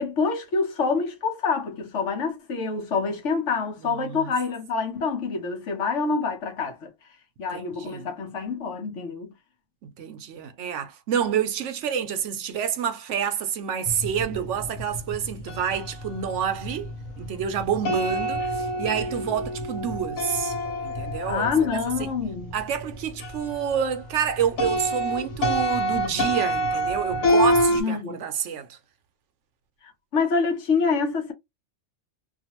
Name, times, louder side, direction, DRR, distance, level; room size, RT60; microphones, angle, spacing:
voice 1, 0.0-6.9 7.4-9.3 21.2-22.5 27.7-28.2 30.1-31.3, left 5 dB, 65° left, 1.1 m, -26 dB
voice 2, 7.5-8.1 9.8-16.9 17.2-20.6 20.8-21.5 22.0-22.1 22.5-28.8, right 8 dB, 70° right, 0.9 m, -28 dB
sound 1, 13.9-24.0 24.2-27.8, equal, 85° left, 1.3 m, -27 dB
2.6 x 2.4 x 2.9 m
omnidirectional pair, 1.4 m